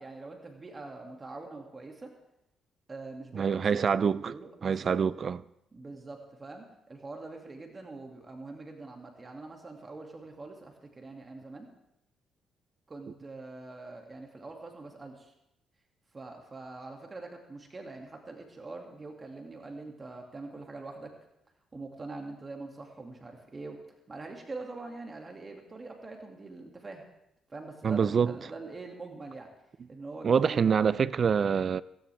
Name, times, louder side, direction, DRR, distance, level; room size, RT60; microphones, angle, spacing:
voice 1, 0.0-2.1 2.9-3.6 4.2-5.0 5.7-11.7 12.9-15.3 16.1-21.1 21.7-23.8 24.1-27.0 27.5-29.5 29.9-30.8, right 3 dB, 30° right, 2.4 m, -44 dB
voice 2, 3.3-4.3 4.6-5.4 27.8-28.3 30.2-31.8, right 6 dB, 45° right, 0.5 m, -25 dB
17.0 x 16.5 x 3.5 m
cardioid pair, 90°, 0 cm